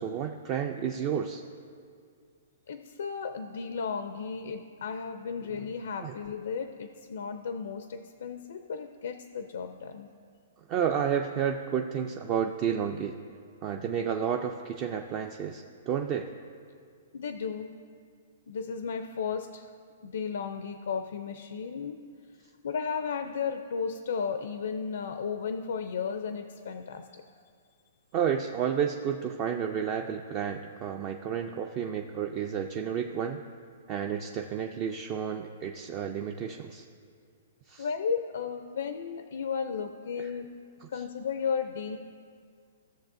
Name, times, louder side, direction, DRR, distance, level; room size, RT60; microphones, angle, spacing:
voice 1, 0.0-1.4 6.0-6.1 10.7-13.1 13.6-16.3 28.1-33.4 33.9-36.8 37.7-37.9 40.2-40.3 40.8-40.9, right 8 dB, 25° right, 4 dB, 0.3 m, -31 dB
voice 2, 2.7-10.1 17.1-17.7 18.5-19.7 20.0-22.0 22.6-27.2 37.8-40.5 40.9-42.0, left 6 dB, 70° left, 8 dB, 0.4 m, -34 dB
16.0 x 6.8 x 2.6 m, 2.2 s
hypercardioid pair, 170°, 0 cm